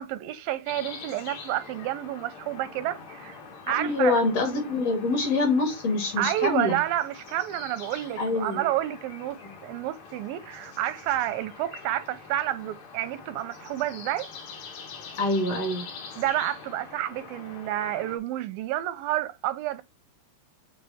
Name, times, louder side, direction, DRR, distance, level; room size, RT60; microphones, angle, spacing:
voice 1, 0.0-3.4 3.7-4.2 6.2-14.3 16.2-19.8, right 13 dB, 90° right, 2.5 m, -30 dB
sound 1, 0.7-18.2, left 5 dB, 90° left, 3.4 m, -44 dB
voice 2, 3.7-6.8 8.2-8.7 9.4-9.5 15.2-15.9, left 2 dB, 50° left, 3.0 m, -25 dB
8.1 x 3.2 x 4.2 m
omnidirectional pair, 4.0 m